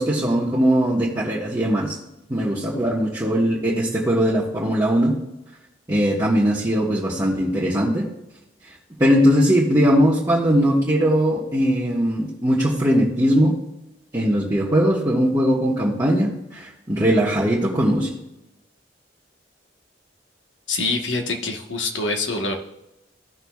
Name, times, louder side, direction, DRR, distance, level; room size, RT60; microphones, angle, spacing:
voice 1, 0.0-2.0 2.3-5.1 5.9-8.0 9.0-13.5 14.1-18.1, equal, 20° right, -8 dB, 1.3 m, -20 dB
voice 2, 20.7-22.5, left 3 dB, 90° left, 3 dB, 1.3 m, -25 dB
16.0 x 5.9 x 2.4 m, 0.90 s
head